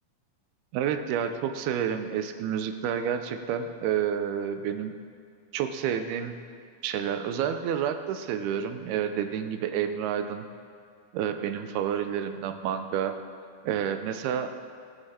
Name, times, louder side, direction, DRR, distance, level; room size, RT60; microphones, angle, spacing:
voice 1, 0.7-4.9 5.5-6.4 6.8-10.5 11.1-13.1 13.6-14.5, right 8 dB, 85° right, 8 dB, 2.7 m, -29 dB
19.0 x 7.9 x 4.3 m, 2.2 s
omnidirectional pair, 4.4 m